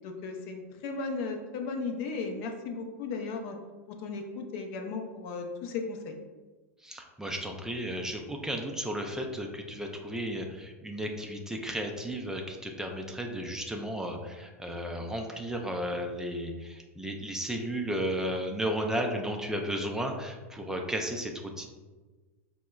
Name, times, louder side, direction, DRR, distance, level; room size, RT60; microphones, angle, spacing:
voice 1, 0.0-3.6 3.9-6.2, left 4 dB, 55° left, 4 dB, 0.5 m, -36 dB
voice 2, 6.8-21.7, equal, 5° right, 2 dB, 0.3 m, -34 dB
4.4 x 2.0 x 2.2 m, 1.3 s
hypercardioid pair, 100°, 8 cm